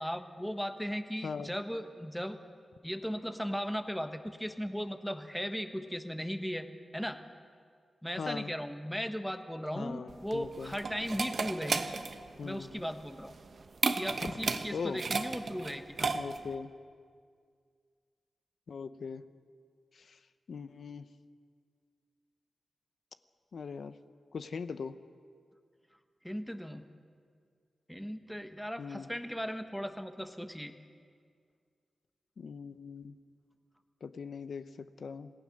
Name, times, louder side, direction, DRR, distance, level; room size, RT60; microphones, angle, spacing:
voice 1, 0.0-2.4 2.8-6.7 6.9-7.2 8.0-11.9 12.4-13.3 13.9-16.2 26.2-26.9 27.9-30.7, equal, ahead, 8 dB, 1.2 m, -37 dB
voice 2, 1.2-1.6 8.2-8.5 9.8-10.7 12.4-12.7 14.7-15.0 16.1-16.7 18.7-19.2 19.9-20.2 20.5-21.0 23.5-24.0 24.3-24.9 28.8-29.1 32.4-33.2 34.0-35.3, left 5 dB, 70° left, 11 dB, 0.8 m, -40 dB
sound 1, 10.1-16.6, right 4 dB, 55° right, 1.0 m, -34 dB
27.0 x 18.0 x 6.5 m, 2.1 s
wide cardioid pair, 110°, 0 cm